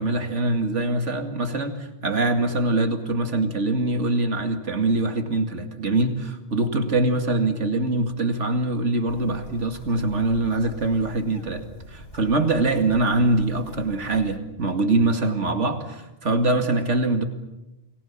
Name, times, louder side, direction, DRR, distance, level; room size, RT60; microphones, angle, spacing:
voice 1, 0.0-17.2, right 2 dB, 85° right, 7 dB, 2.6 m, -23 dB
Bird, 9.1-14.4, left 1 dB, 75° left, 3.4 m, -44 dB
29.5 x 20.0 x 7.4 m, 1.0 s
omnidirectional pair, 1.2 m